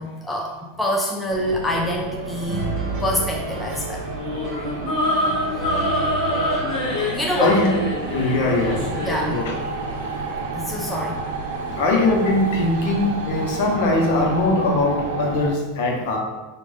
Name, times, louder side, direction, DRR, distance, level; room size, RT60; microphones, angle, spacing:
voice 1, 0.0-2.7 3.0-4.1 7.1-7.6 9.0-9.4 10.5-11.2, equal, 5° left, -2 dB, 0.3 m, -25 dB
sound 1, 1.3-15.5, right 3 dB, 85° right, 0.7 m, -31 dB
sound 2, 2.5-9.4, right 2 dB, 30° right, 1.1 m, -33 dB
sound 3, 4.1-9.3, left 1 dB, 35° left, 1.1 m, -25 dB
voice 2, 7.0-7.7 8.1-8.9 9.3-9.5 10.1-10.2 10.9-11.0 11.7-16.2, left 2 dB, 55° left, 0 dB, 0.9 m, -21 dB
5.3 x 2.4 x 3.4 m, 1.2 s
supercardioid pair, 175°, 0 cm